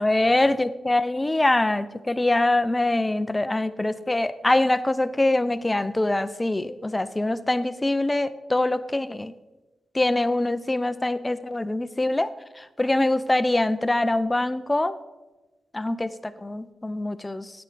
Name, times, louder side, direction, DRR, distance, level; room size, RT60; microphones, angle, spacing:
voice 1, 0.0-9.3 9.9-12.3 12.6-15.0 15.7-17.5, left 2 dB, 15° left, 13 dB, 0.4 m, -24 dB
17.0 x 8.0 x 3.2 m, 1.1 s
cardioid pair, 90°, 0 cm